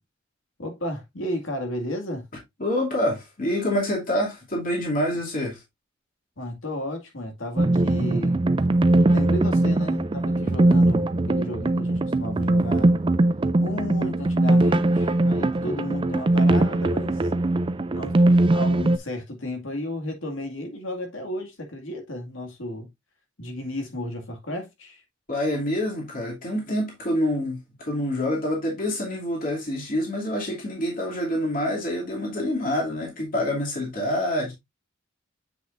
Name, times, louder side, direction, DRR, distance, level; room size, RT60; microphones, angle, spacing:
voice 1, 0.6-2.3 5.1-5.2 6.4-8.4 9.1-12.9 13.6-17.3 17.9-18.2 18.5-22.9 23.4-25.0, left 1 dB, 75° left, 2.2 m, -33 dB
voice 2, 2.6-5.6 25.3-34.5, left 1 dB, 45° left, 2.7 m, -26 dB
sound 1, 7.6-19.0, right 2 dB, 25° right, 0.4 m, -21 dB
7.9 x 5.9 x 2.6 m
head